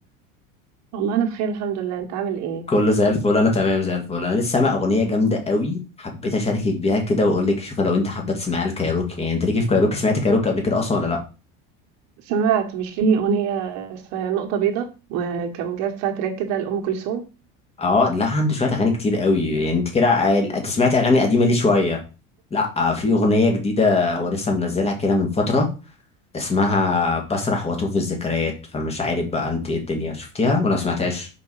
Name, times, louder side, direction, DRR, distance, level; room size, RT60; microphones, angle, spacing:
voice 1, 0.9-2.7 12.3-17.3, right 7 dB, 65° right, 1.7 m, -24 dB
voice 2, 2.7-11.2 17.8-22.0 22.5-25.7 26.3-31.3, left 3 dB, 20° left, 2.2 m, -21 dB
5.3 x 5.2 x 4.9 m
supercardioid pair, 125°, 30 cm